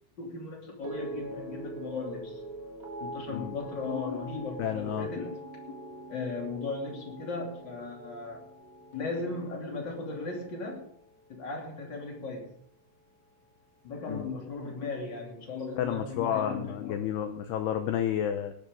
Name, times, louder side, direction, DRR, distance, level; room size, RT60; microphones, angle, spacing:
voice 1, 0.2-2.4 3.0-5.4 6.1-8.5 8.9-10.9 11.3-12.6 13.8-16.9, left 3 dB, 30° left, 0 dB, 2.6 m, -37 dB
sound 1, 0.8-11.2 11.5-12.0, right 1 dB, 60° right, 1.3 m, -43 dB
voice 2, 4.6-5.1 14.1-14.3 15.8-18.5, left 10 dB, 85° left, 7 dB, 2.3 m, -31 dB
18.5 x 12.0 x 3.7 m, 0.63 s
omnidirectional pair, 5.8 m